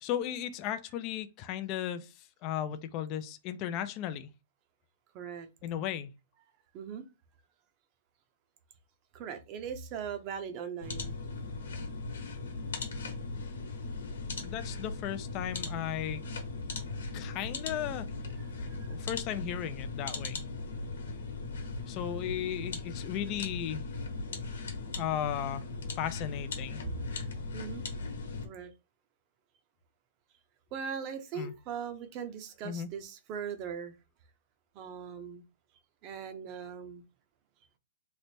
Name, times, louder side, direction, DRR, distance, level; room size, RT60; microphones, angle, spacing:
voice 1, 0.0-2.1 2.4-4.3 5.6-6.1 14.4-16.2 17.1-18.1 18.9-20.4 21.9-23.9 25.0-25.6 26.0-26.8 31.3-31.5 32.6-32.9, left 10 dB, 30° left, 0.3 m, -35 dB
voice 2, 5.1-5.5 6.7-7.0 9.1-11.2 18.7-19.1 27.5-27.9 28.4-28.7 30.7-33.9 34.7-35.4 36.0-37.0, right 7 dB, 30° right, 0.6 m, -40 dB
sound 1, 10.8-28.5, left 3 dB, 85° left, 1.0 m, -38 dB
3.2 x 2.0 x 4.1 m
hypercardioid pair, 160°, 0 cm